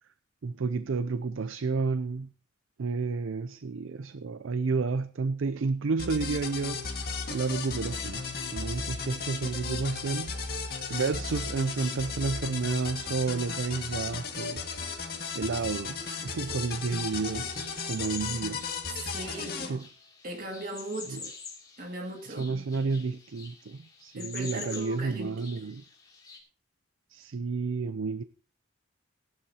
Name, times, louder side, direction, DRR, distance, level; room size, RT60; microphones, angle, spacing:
voice 1, 0.4-2.3 2.8-8.3 8.5-10.3 10.9-14.6 15.3-18.6 19.7-19.8 21.1-21.2 22.3-25.8 27.1-28.2, right 4 dB, 85° right, 0.5 m, -31 dB
sound 1, 6.0-19.7, left 5 dB, 50° left, 1.9 m, -35 dB
sound 2, 16.6-26.4, left 5 dB, 20° left, 2.8 m, -46 dB
voice 2, 19.0-19.9 20.2-21.3 21.8-22.6 24.1-25.5, right 1 dB, 45° right, 2.2 m, -39 dB
17.0 x 11.5 x 2.8 m
head